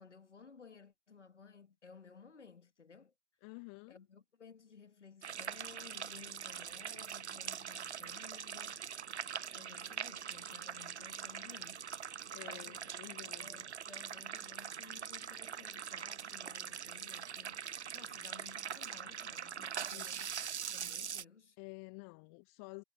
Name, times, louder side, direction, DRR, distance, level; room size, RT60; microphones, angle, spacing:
voice 1, 0.0-3.1 3.9-9.2 9.5-11.9 12.4-12.9 13.3-21.6, left 5 dB, 75° left, 2.4 m, -57 dB
voice 2, 3.4-4.0 12.3-13.6 19.9-20.1 21.6-22.8, left 37 dB, 20° left, 0.6 m, -50 dB
sound 1, 5.2-21.2, right 8 dB, 65° right, 0.9 m, -43 dB
figure-of-eight pair, 110°, 36 cm